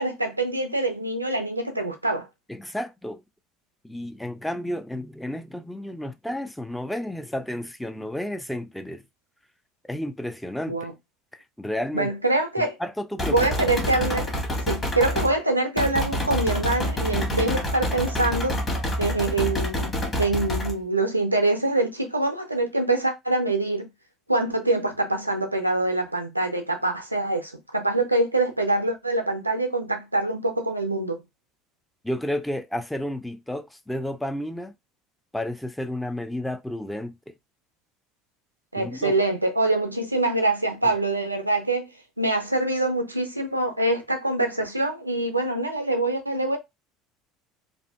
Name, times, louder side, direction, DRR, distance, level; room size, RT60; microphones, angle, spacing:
voice 1, 0.0-2.3 10.7-10.9 11.9-12.8 13.3-14.3 14.7-18.5 19.0-23.9 24.3-31.2 38.7-41.9 42.2-46.6, right 2 dB, 90° right, 0.4 m, -25 dB
voice 2, 2.5-3.2 3.8-9.0 9.8-10.9 11.3-12.1 12.8-13.5 32.0-34.7 35.3-37.3 38.8-39.1 40.8-40.9, left 1 dB, 5° left, 0.3 m, -32 dB
sound 1, 13.2-15.3 15.8-20.7, equal, 25° left, 1.2 m, -27 dB
2.5 x 2.4 x 2.2 m
figure-of-eight pair, 65°, 0 cm